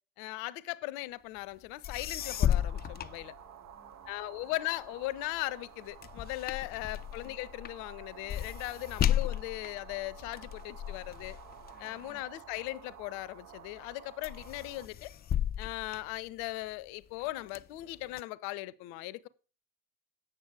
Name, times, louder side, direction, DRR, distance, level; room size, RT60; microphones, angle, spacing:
voice 1, 0.2-3.3 4.1-11.4 11.8-15.1 15.6-19.3, left 18 dB, 65° left, 0.6 m, -38 dB
sound 1, 1.6-1.7 1.8-3.9 4.4-13.1 13.6-13.9 14.2-16.7 17.2-18.2, left 10 dB, 30° left, 0.3 m, -35 dB
sound 2, 2.2-14.9, right 10 dB, 50° right, 0.7 m, -52 dB
voice 2, 3.2-4.5 6.7-7.1 11.7-12.2, right 2 dB, 85° right, 3.9 m, -68 dB
8.8 x 6.6 x 4.8 m
figure-of-eight pair, 50°, 37 cm